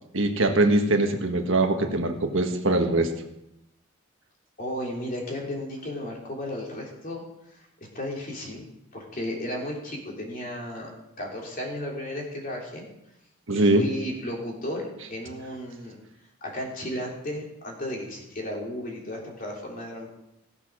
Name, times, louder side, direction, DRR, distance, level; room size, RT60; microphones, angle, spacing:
voice 1, 0.1-3.1 13.5-13.8, right 2 dB, 70° right, 4 dB, 1.5 m, -22 dB
voice 2, 4.6-7.2 7.5-8.6 8.9-10.9 11.2-12.9 13.5-16.0 16.4-20.1, left 1 dB, 45° left, -2 dB, 3.2 m, -34 dB
16.5 x 6.7 x 6.2 m, 0.87 s
head